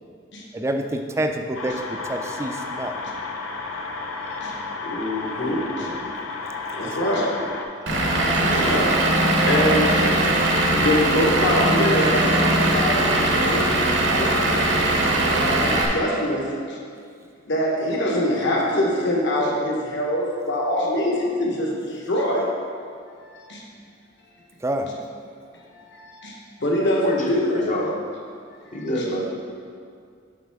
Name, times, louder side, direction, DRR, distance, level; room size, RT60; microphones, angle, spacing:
voice 1, 0.5-1.7 2.1-3.0 5.8-6.0 6.8-7.0 24.6-24.9, right 1 dB, 15° right, 5 dB, 0.3 m, -27 dB
sound 1, 1.5-7.6, left 3 dB, 85° left, 0.6 m, -32 dB
voice 2, 4.8-5.9 6.7-7.3 8.4-8.9 9.2-10.0 10.7-14.3 14.5-14.7 15.3-16.8 17.5-21.7 22.1-22.5 23.5-23.6 25.9-26.3 26.6-27.7 28.8-29.1, left 1 dB, 60° left, -2 dB, 1.2 m, -24 dB
Vehicle / Engine, 7.9-15.9, right 1 dB, 60° right, 0.8 m, -20 dB
voice 3, 27.0-28.0 28.7-29.3, equal, 40° left, 0 dB, 0.7 m, -29 dB
7.3 x 5.3 x 3.5 m, 2.2 s
head